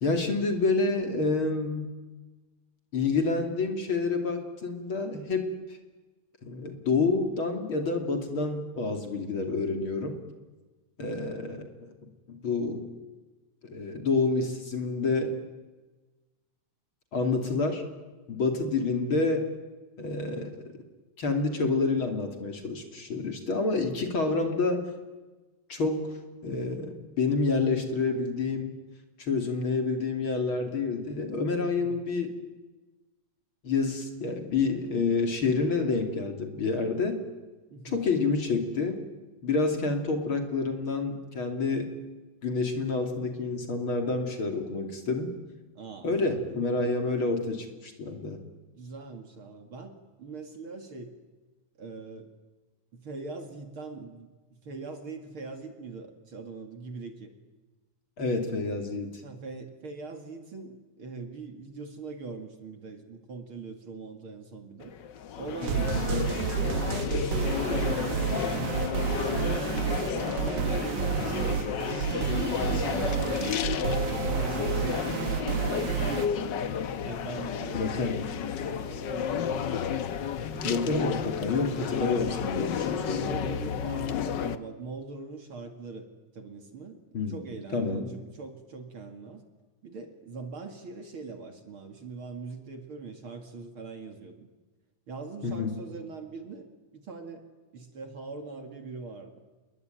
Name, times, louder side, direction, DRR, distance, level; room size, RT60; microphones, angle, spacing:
voice 1, 0.0-1.9 2.9-5.8 6.4-10.2 11.0-11.7 12.3-12.9 13.7-15.3 17.1-17.8 18.3-19.5 20.0-20.7 21.2-24.9 25.7-26.1 26.4-28.7 29.2-32.3 33.6-37.2 37.8-39.0 39.4-41.9 42.4-45.3 46.0-48.4 58.2-59.1 65.9-66.3 77.7-78.2 80.6-83.4 87.1-87.4 87.7-88.1 95.4-95.8, left 3 dB, 45° left, 5 dB, 3.4 m, -28 dB
voice 2, 11.0-11.4 31.8-32.0 37.7-38.1 45.7-46.1 48.8-51.2 51.8-52.3 52.9-54.3 54.6-57.4 59.2-64.9 65.3-71.6 72.0-76.7 77.0-79.4 80.5-81.2 83.2-86.1 86.3-87.0 87.3-89.4 89.8-94.5 95.1-96.7 96.9-99.3, right 4 dB, 45° right, 6 dB, 2.7 m, -42 dB
sound 1, 64.8-84.6, left 8 dB, 85° left, 0.9 m, -31 dB
sound 2, 65.6-76.3, right 10 dB, 75° right, 2.4 m, -30 dB
28.0 x 22.0 x 9.4 m, 1.2 s
omnidirectional pair, 3.4 m